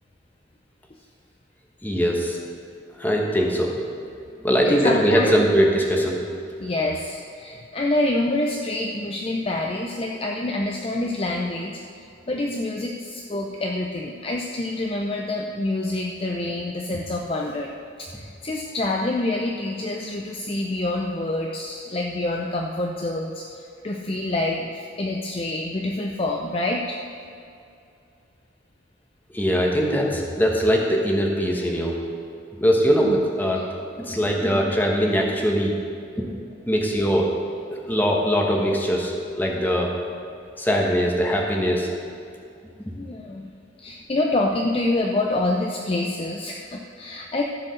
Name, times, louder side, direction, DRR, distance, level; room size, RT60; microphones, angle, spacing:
voice 1, 1.8-2.4 3.0-3.7 4.4-6.2 29.3-32.0 32.6-33.6 34.0-35.7 36.2-36.3 36.7-37.3 37.7-39.1 39.4-39.9 40.6-41.9, equal, 10° left, -1 dB, 1.2 m, -21 dB
voice 2, 4.6-5.5 6.6-27.0 33.1-33.2 33.6-33.7 43.0-43.5 43.8-47.4, left 2 dB, 30° left, 1 dB, 0.5 m, -27 dB
14.5 x 5.1 x 6.3 m, 2.5 s
head